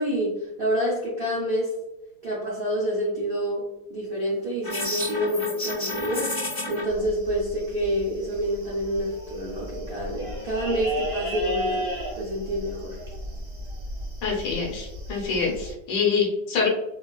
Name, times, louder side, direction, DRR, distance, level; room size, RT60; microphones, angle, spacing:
voice 1, 0.0-1.7 2.2-11.9 12.1-13.0, equal, 70° right, -5 dB, 0.5 m, -28 dB
sound 1, 4.6-6.8, left 1 dB, 30° left, 0.4 m, -30 dB
sound 2, 6.9-15.7, equal, 20° right, 1.0 m, -35 dB
voice 2, 14.2-16.7, left 5 dB, 80° left, -2 dB, 1.5 m, -25 dB
3.1 x 2.3 x 2.2 m, 0.92 s
omnidirectional pair, 1.9 m